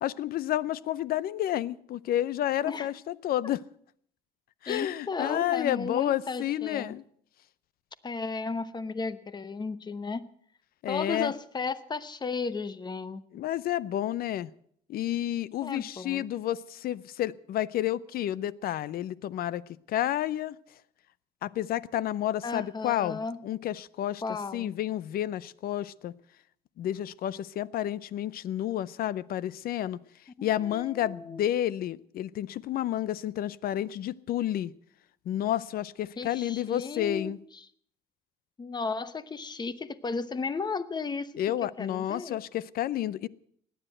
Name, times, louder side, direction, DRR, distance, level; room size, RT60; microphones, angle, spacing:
voice 1, 0.0-3.6 4.6-7.0 10.8-11.3 13.3-14.5 14.9-19.6 19.9-20.6 21.4-24.2 24.5-26.1 26.8-30.0 30.4-34.7 35.3-37.4 41.4-43.3, left 12 dB, 60° left, 21 dB, 0.6 m, -30 dB
voice 2, 4.7-6.9 8.0-10.3 10.9-13.2 15.6-16.3 22.4-23.4 24.2-24.7 30.4-31.4 36.2-37.6 38.6-41.3 41.6-42.4, left 4 dB, 25° left, 15 dB, 1.0 m, -34 dB
17.0 x 10.0 x 7.8 m, 0.65 s
cardioid pair, 110°, 17 cm